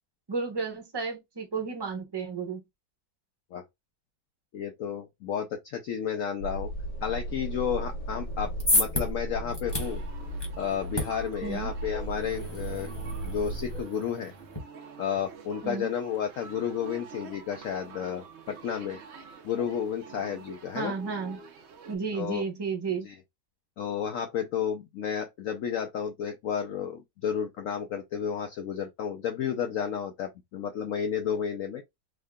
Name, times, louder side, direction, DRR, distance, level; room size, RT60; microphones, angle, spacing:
voice 1, 0.3-2.6 11.4-11.7 15.6-15.9 20.7-21.4 21.9-23.1, right 5 dB, 25° right, 0.6 m, -32 dB
voice 2, 4.5-6.7 7.0-10.0 10.6-12.9 13.2-14.3 15.0-19.0 19.4-20.9 22.1-22.4 23.0-23.2 23.8-31.8, left 8 dB, 80° left, 0.7 m, -32 dB
sound 1, 6.4-13.8, right 1 dB, 45° left, 1.5 m, -36 dB
sound 2, 8.3-14.6, left 1 dB, 20° left, 0.9 m, -33 dB
sound 3, 9.6-22.0, right 6 dB, 70° right, 0.6 m, -47 dB
3.6 x 2.1 x 3.6 m
omnidirectional pair, 1.9 m